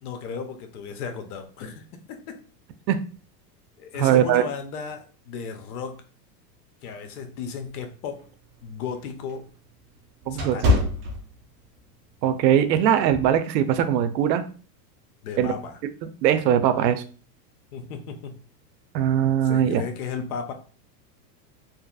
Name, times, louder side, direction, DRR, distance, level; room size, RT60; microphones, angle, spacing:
voice 1, 0.0-2.4 3.8-6.0 6.8-8.2 8.6-9.5 10.3-10.7 15.2-15.8 17.7-18.4 19.4-20.5, left 6 dB, 60° left, 7 dB, 0.7 m, -35 dB
voice 2, 4.0-4.4 10.3-10.6 12.2-14.4 15.4-15.5 16.2-17.0 18.9-19.8, right 9 dB, 85° right, 11 dB, 0.6 m, -20 dB
Closing Bathroom Door, 8.2-11.8 12.3-12.5 13.1-13.4, left 2 dB, 35° right, 0.5 m, -26 dB
2.8 x 2.5 x 2.3 m, 0.39 s
supercardioid pair, 135°, 50 cm